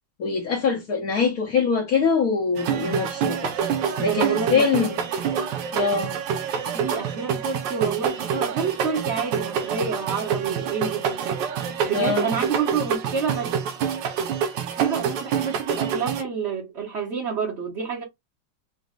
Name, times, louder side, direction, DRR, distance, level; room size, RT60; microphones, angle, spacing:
voice 1, 0.2-3.5 4.0-5.0 5.7-6.2 11.9-12.3, left 5 dB, 55° left, 1.4 m, -23 dB
sound 1, 2.6-16.2, right 7 dB, 85° right, 1.3 m, -27 dB
voice 2, 4.0-4.7 6.7-13.5 14.8-18.0, right 6 dB, 45° right, 1.2 m, -28 dB
4.2 x 2.2 x 3.7 m
omnidirectional pair, 1.9 m